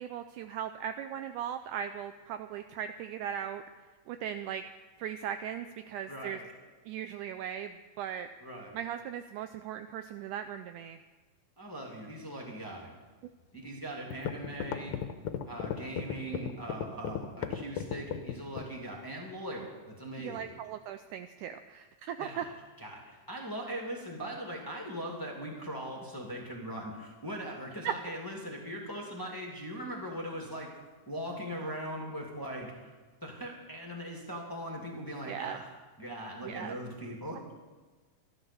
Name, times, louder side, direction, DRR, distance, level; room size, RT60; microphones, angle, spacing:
voice 1, 0.0-3.6 4.1-4.6 5.0-6.4 6.9-8.3 8.7-11.0 20.2-22.4 27.8-27.9 35.3-35.6 36.4-36.8, right 9 dB, 80° right, 9 dB, 1.9 m, -38 dB
voice 2, 6.1-6.5 8.4-8.7 11.6-12.9 13.5-15.0 15.5-20.5 22.2-22.5 22.8-30.7 31.1-32.9 33.2-35.7 36.0-37.4, equal, 5° left, -2 dB, 1.8 m, -40 dB
sound 1, 13.6-13.7 14.1-18.8, left 9 dB, 70° left, 2.0 m, -35 dB
13.0 x 12.0 x 6.9 m, 1.3 s
omnidirectional pair, 3.9 m